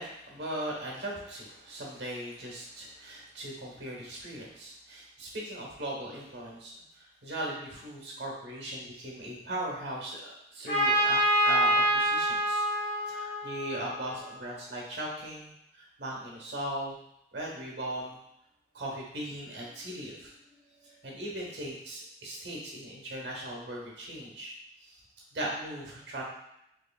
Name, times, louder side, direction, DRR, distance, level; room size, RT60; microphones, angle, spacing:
voice 1, 0.0-12.6 13.1-17.0 17.3-18.2 18.7-20.5 20.8-24.5 24.8-25.0 25.3-26.2, right 1 dB, 80° right, -2 dB, 1.1 m, -38 dB
Trumpet, 10.7-14.4, equal, 35° left, 1.5 m, -26 dB
4.7 x 3.0 x 2.3 m, 0.81 s
head